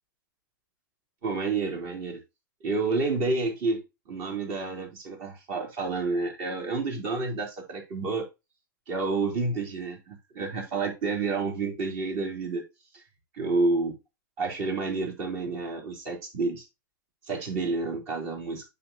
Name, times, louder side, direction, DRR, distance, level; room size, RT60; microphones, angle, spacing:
voice 1, 1.2-2.2 2.6-8.3 8.9-12.6 12.9-13.0 13.3-14.0 14.4-16.6 17.3-18.6, right 3 dB, 40° right, 4.1 m, -29 dB
9.3 x 6.0 x 3.0 m
hypercardioid pair, 135°, 11 cm